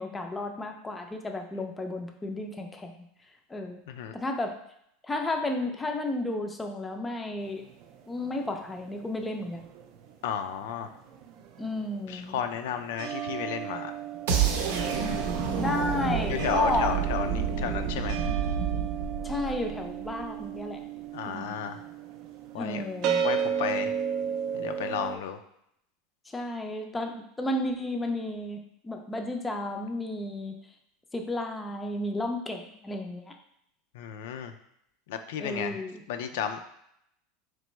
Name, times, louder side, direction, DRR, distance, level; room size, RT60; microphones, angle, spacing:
voice 1, 0.0-3.0 3.5-3.8 4.1-4.6 5.0-7.6 8.1-9.7 11.6-12.4 15.5-16.9 19.2-20.8 21.3-21.5 22.6-23.2 26.3-30.6 31.1-33.4 35.4-36.0, left 1 dB, 10° left, 3 dB, 0.4 m, -32 dB
sound 1, 7.5-10.1 10.4-25.2, right 8 dB, 50° right, 0.4 m, -34 dB
voice 2, 10.2-10.9 12.1-13.9 16.3-18.2 21.1-21.8 22.5-22.8 23.2-23.9 24.5-25.4 33.9-34.5 35.1-35.8 36.1-36.6, left 8 dB, 80° left, 7 dB, 0.4 m, -33 dB
sound 2, 14.3-20.2, right 6 dB, 85° right, 0.7 m, -29 dB
4.0 x 3.3 x 3.1 m, 0.75 s
supercardioid pair, 155°, 0 cm